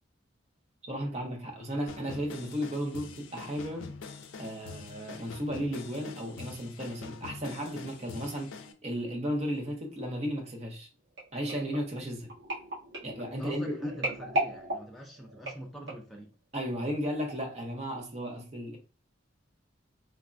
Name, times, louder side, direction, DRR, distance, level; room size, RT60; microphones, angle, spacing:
voice 1, 0.8-3.9 4.4-8.5 8.8-10.9 11.3-12.3 13.0-14.0 16.5-18.8, equal, 35° right, 0.7 m, -34 dB
sound 1, 1.9-8.7, left 4 dB, 90° left, 0.4 m, -45 dB
sound 2, 11.2-16.2 16.8-17.0 17.3-17.4, right 1 dB, 65° right, 1.4 m, -36 dB
voice 2, 13.3-16.3, equal, ahead, 0.5 m, -45 dB
3.3 x 2.1 x 2.5 m
head